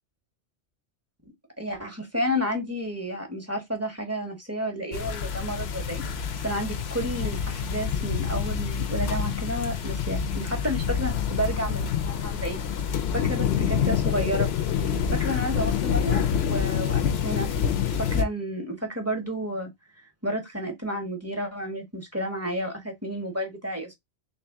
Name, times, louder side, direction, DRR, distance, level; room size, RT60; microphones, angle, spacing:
voice 1, 1.6-6.0 6.4-12.6 13.1-14.5 15.1-17.5 17.8-19.7 20.2-23.9, equal, 15° right, 0.8 m, -31 dB
sound 1, 4.9-18.2, left 7 dB, 65° left, 0.8 m, -27 dB
3.5 x 2.8 x 3.5 m
omnidirectional pair, 1.2 m